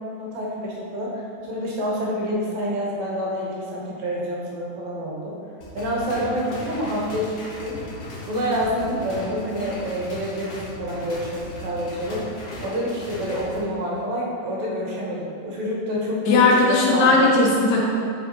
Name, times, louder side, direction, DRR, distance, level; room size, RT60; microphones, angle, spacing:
voice 1, 0.2-1.2 1.5-5.3 5.7-7.8 8.3-12.3 12.6-17.4, equal, 80° right, -4 dB, 2.4 m, -27 dB
sound 1, 5.6-13.6, left 1 dB, 55° left, 1.1 m, -37 dB
voice 2, 16.3-17.9, left 3 dB, 80° left, -3 dB, 2.4 m, -17 dB
5.6 x 4.4 x 4.2 m, 2.5 s
omnidirectional pair, 3.4 m